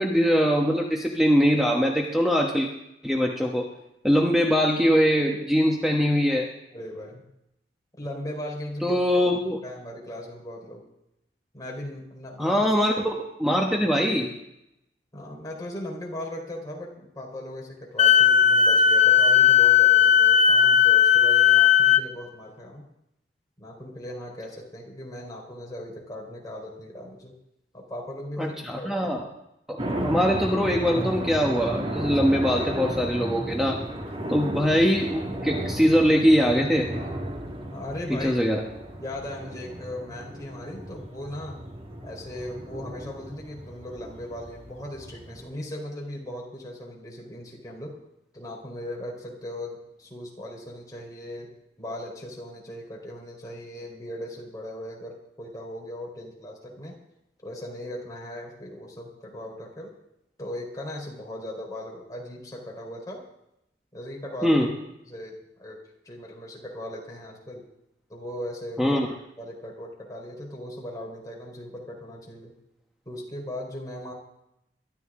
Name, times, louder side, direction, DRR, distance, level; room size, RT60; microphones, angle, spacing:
voice 1, 0.0-2.7 3.0-3.7 4.0-6.5 8.8-9.6 12.4-14.3 28.4-29.2 29.7-33.8 34.3-37.0 38.1-38.6 64.4-64.7 68.8-69.1, equal, ahead, 0 dB, 1.2 m, -22 dB
voice 2, 6.7-7.2 8.0-9.0 9.6-10.8 11.5-12.6 13.4-13.6 15.1-22.9 23.6-27.3 27.7-28.9 34.2-34.5 37.7-38.3 39.0-41.6 42.0-48.0 48.3-51.5 51.8-56.9 57.4-59.9 60.4-63.2 63.9-64.6 65.1-65.8 66.0-67.7 68.1-69.0 69.4-72.5 73.1-74.1, left 1 dB, 20° left, -2 dB, 4.2 m, -38 dB
Wind instrument woodwind instrument, 18.0-22.0, left 9 dB, 35° left, 0.9 m, -17 dB
sound 1, 29.8-45.5, right 1 dB, 30° right, 1.9 m, -34 dB
22.5 x 12.0 x 3.8 m, 0.84 s
head